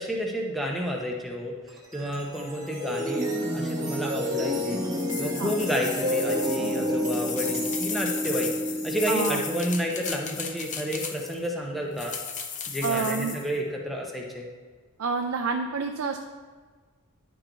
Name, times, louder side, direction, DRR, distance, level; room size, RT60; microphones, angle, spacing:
voice 1, 0.0-1.6 1.9-4.8 5.2-8.5 8.8-12.1 12.7-14.5, equal, ahead, -1 dB, 0.9 m, -30 dB
sound 1, 1.7-10.9, equal, 15° right, 1.3 m, -30 dB
sound 2, 4.9-11.5 12.0-13.5, left 6 dB, 35° left, 0.6 m, -35 dB
voice 2, 9.1-9.4 12.8-13.4 15.0-16.2, right 5 dB, 70° right, 4 dB, 0.5 m, -28 dB
10.5 x 4.6 x 3.9 m, 1.5 s
head